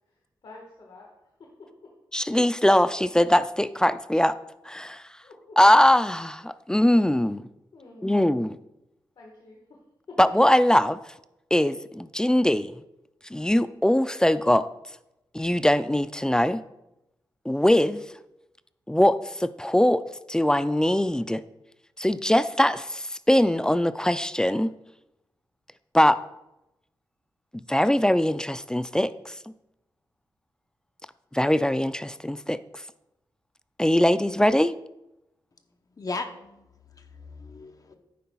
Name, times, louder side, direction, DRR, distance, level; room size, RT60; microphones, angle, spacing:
voice 1, 0.4-1.1 1.4-1.9 5.2-5.6 7.7-8.2 9.2-9.8 10.1-10.2 37.9-38.0, left 3 dB, 70° left, -1 dB, 1.5 m, -48 dB
voice 2, 2.1-4.3 4.7-5.0 5.6-7.4 8.0-8.6 10.2-11.0 11.5-12.7 13.3-14.7 15.3-16.6 17.5-18.0 18.9-21.4 22.0-24.7 25.9-26.2 27.7-29.4 31.3-32.6 33.8-34.7, left 1 dB, 10° left, 13 dB, 0.4 m, -21 dB
voice 3, 36.0-38.0, left 3 dB, 45° left, 6 dB, 0.8 m, -37 dB
11.0 x 9.3 x 2.3 m, 0.91 s
cardioid pair, 60°, 9 cm